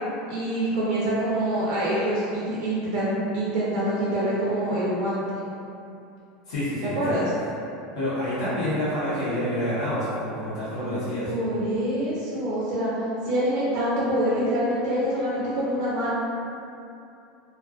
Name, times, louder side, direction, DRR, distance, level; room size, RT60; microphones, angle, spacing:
voice 1, 0.3-5.2 6.8-7.3 11.2-12.9 13.2-16.1, right 1 dB, 60° right, -7 dB, 0.5 m, -25 dB
voice 2, 6.5-7.1 7.9-11.3, left 1 dB, 90° left, -12 dB, 0.9 m, -28 dB
2.3 x 2.3 x 2.3 m, 2.7 s
supercardioid pair, 135°, 3 cm